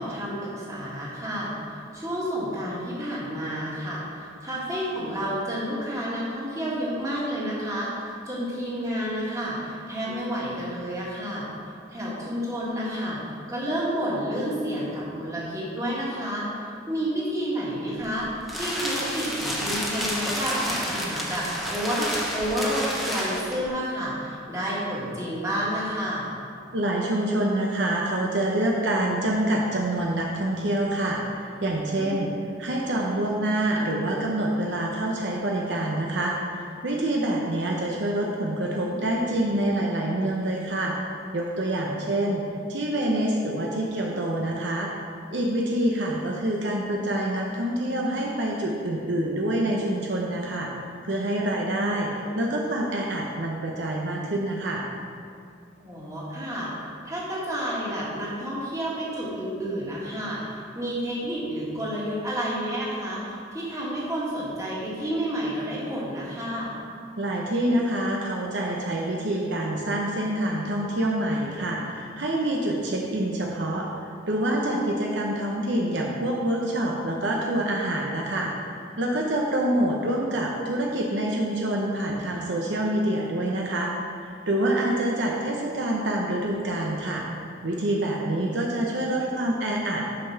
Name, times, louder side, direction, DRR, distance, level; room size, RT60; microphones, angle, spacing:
voice 1, 0.0-1.5 1.9-11.4 11.9-16.5 16.9-18.3 18.5-22.1 22.3-26.3 32.0-32.3 41.9-42.1 55.8-56.7 57.1-60.4 60.7-66.7 74.6-75.0, equal, 15° right, -6 dB, 1.9 m, -30 dB
sound 1, 18.0-23.7, equal, ahead, 0.9 m, -30 dB
voice 2, 26.7-32.3 32.6-41.1 41.3-42.4 42.7-44.9 45.3-50.7 51.0-54.8 67.2-78.5 79.0-83.9 84.2-87.2 87.6-90.2, right 1 dB, 65° right, -1 dB, 0.8 m, -26 dB
6.7 x 5.6 x 5.9 m, 2.4 s
head